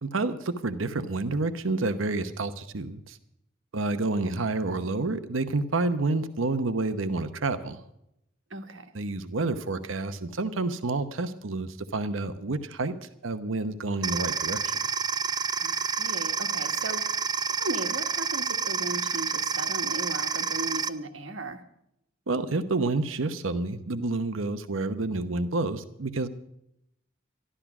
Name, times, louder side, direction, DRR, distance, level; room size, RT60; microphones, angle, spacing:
voice 1, 0.0-3.2 3.7-7.8 8.9-14.8 22.3-26.3, right 3 dB, 90° right, 10 dB, 0.9 m, -29 dB
voice 2, 8.5-8.9 15.6-17.0 17.5-21.6, right 2 dB, 75° right, 7 dB, 1.4 m, -37 dB
sound 1, 14.0-20.9, right 5 dB, 20° right, 0.5 m, -29 dB
12.5 x 12.5 x 6.0 m, 0.78 s
head